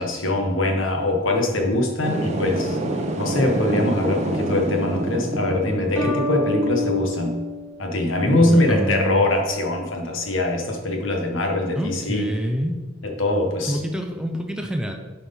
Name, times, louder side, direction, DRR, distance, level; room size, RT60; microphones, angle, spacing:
voice 1, 0.0-7.4 7.8-12.3 13.0-13.8, left 2 dB, 75° left, 2 dB, 1.4 m, -22 dB
sound 1, 2.0-6.2, right 1 dB, 35° right, 0.8 m, -27 dB
sound 2, 6.0-8.6, left 1 dB, 15° left, 1.5 m, -28 dB
voice 2, 8.2-9.2 11.8-12.7 13.7-14.9, equal, 5° right, 3 dB, 0.6 m, -26 dB
7.5 x 4.7 x 5.4 m, 1.3 s
head